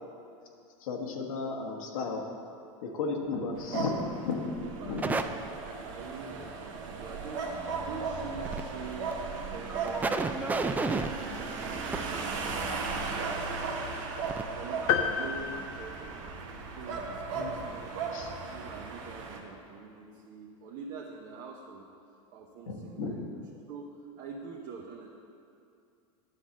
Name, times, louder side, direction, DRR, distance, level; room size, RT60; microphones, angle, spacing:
voice 1, 0.8-2.2 2.8-4.0 4.2-5.2 17.3-17.6 18.1-18.3 22.7-23.2, left 4 dB, 80° left, 1 dB, 1.3 m, -34 dB
sound 1, 3.5-19.4, right 4 dB, 65° right, 1.2 m, -36 dB
voice 2, 4.5-7.5 7.8-9.1 9.4-14.0 14.5-16.3 16.8-18.1 18.5-21.8 22.3-25.1, right 4 dB, 50° right, -1 dB, 0.9 m, -45 dB
sound 2, 5.0-5.2 8.3-8.6 9.1-9.2 9.7-12.0 13.8-13.9 14.2-14.4 14.8-14.9, right 3 dB, 10° right, 0.3 m, -31 dB
sound 3, 14.9-16.7, left 7 dB, 55° left, 0.7 m, -31 dB
10.0 x 4.1 x 7.4 m, 2.5 s
supercardioid pair, 120°, 17 cm